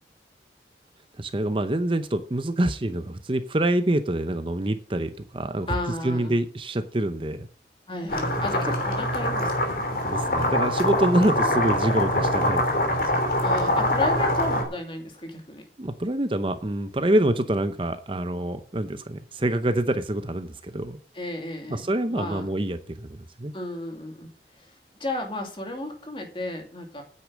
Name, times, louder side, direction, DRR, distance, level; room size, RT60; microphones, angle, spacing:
voice 1, 1.2-5.7 6.0-7.5 10.0-13.0 15.8-21.0 21.7-23.5, right 1 dB, 30° right, 9 dB, 0.7 m, -26 dB
voice 2, 5.7-6.3 7.9-10.0 13.4-15.6 21.1-22.5 23.5-24.3 24.5-24.7 25.0-27.0, left 1 dB, 30° left, 4 dB, 2.4 m, -33 dB
sound 1, 8.1-14.6, left 1 dB, 50° left, 3.0 m, -24 dB
9.5 x 8.5 x 6.3 m, 0.42 s
head